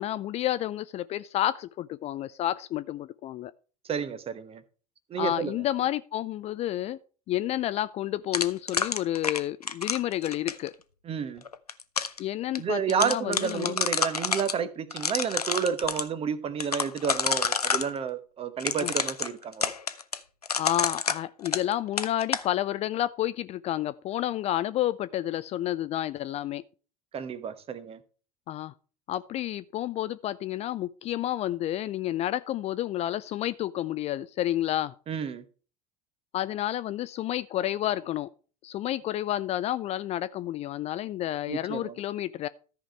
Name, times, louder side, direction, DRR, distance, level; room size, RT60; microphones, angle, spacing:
voice 1, 0.0-3.5 5.2-7.0 7.3-10.7 12.2-13.8 18.8-18.9 20.6-26.6 28.5-28.7 29.1-34.9 36.3-38.3 38.6-42.5, left 13 dB, 35° left, 0.4 m, -30 dB
voice 2, 3.9-4.6 5.1-5.5 11.0-11.4 12.6-19.7 27.1-28.0 35.1-35.4 41.5-41.9, right 7 dB, 30° right, 1.1 m, -30 dB
sound 1, 8.3-10.7 11.5-12.2 12.6-12.7 12.9-14.5 14.9-16.0 16.6-17.9 18.6-21.7 22.0-22.5, left 5 dB, 90° left, 0.5 m, -29 dB
13.5 x 5.1 x 4.5 m
figure-of-eight pair, 75°, 19 cm